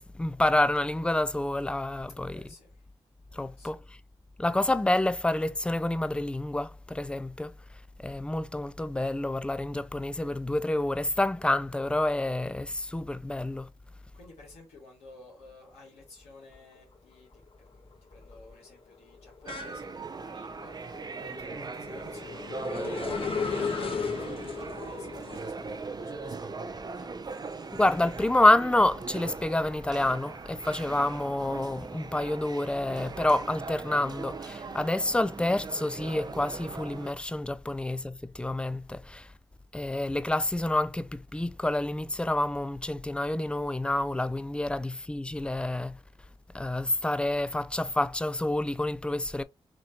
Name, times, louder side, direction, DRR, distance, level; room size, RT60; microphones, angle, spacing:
voice 1, 0.0-2.4 3.3-3.8 4.4-7.5 8.0-13.7 27.7-39.3 39.7-46.0 46.5-49.4, left 1 dB, 10° left, 0.4 m, -28 dB
voice 2, 2.1-2.9 3.3-3.8 13.9-17.3 17.7-27.2, left 2 dB, 85° left, 1.9 m, -52 dB
sound 1, 16.6-17.0 17.3-28.6 29.0-30.7, left 5 dB, 55° left, 1.0 m, -38 dB
sound 2, 19.5-37.1, right 4 dB, 40° right, 0.5 m, -40 dB
4.1 x 3.1 x 2.9 m
supercardioid pair, 40°, 11 cm